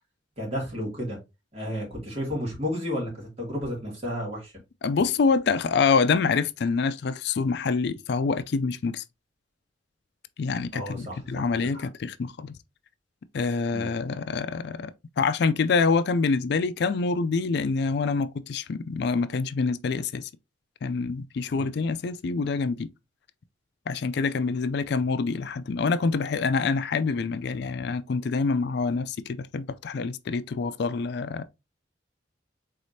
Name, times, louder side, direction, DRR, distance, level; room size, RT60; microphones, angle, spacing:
voice 1, 0.4-1.2 1.5-4.5 10.7-11.4 11.7-11.8 13.7-13.9 21.5-21.7, equal, 35° right, 2.5 m, -32 dB
voice 2, 4.8-9.0 10.4-12.6 13.3-14.9 15.2-20.3 20.8-22.9 23.9-31.5, left 4 dB, 60° left, 0.4 m, -26 dB
4.8 x 4.1 x 2.7 m
head